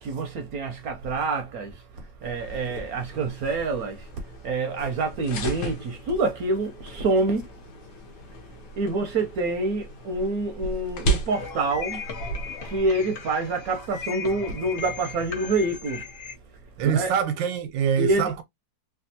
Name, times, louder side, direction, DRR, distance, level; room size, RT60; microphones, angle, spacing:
voice 1, 0.0-7.5 8.8-12.1 12.6-16.1 16.8-17.2 18.0-18.3, right 2 dB, 70° right, 0.9 m, -27 dB
sound 1, 2.2-12.8, right 2 dB, 70° left, 1.3 m, -35 dB
sound 2, 11.3-16.3, left 6 dB, 55° left, 0.7 m, -37 dB
voice 2, 16.8-18.4, right 8 dB, 85° right, 1.4 m, -24 dB
3.4 x 2.3 x 2.7 m
omnidirectional pair, 1.9 m